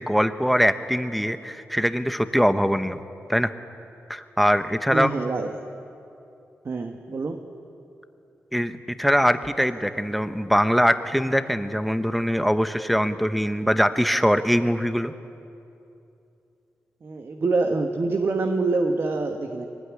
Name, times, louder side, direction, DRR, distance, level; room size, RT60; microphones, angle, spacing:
voice 1, 0.0-3.0 3.3-3.5 4.1-5.2 8.5-15.1, equal, ahead, 9 dB, 1.0 m, -22 dB
voice 2, 4.9-5.5 6.6-7.4 17.0-19.7, right 3 dB, 50° right, 4 dB, 1.5 m, -25 dB
23.5 x 19.0 x 10.0 m, 2.7 s
wide cardioid pair, 95°, 5 cm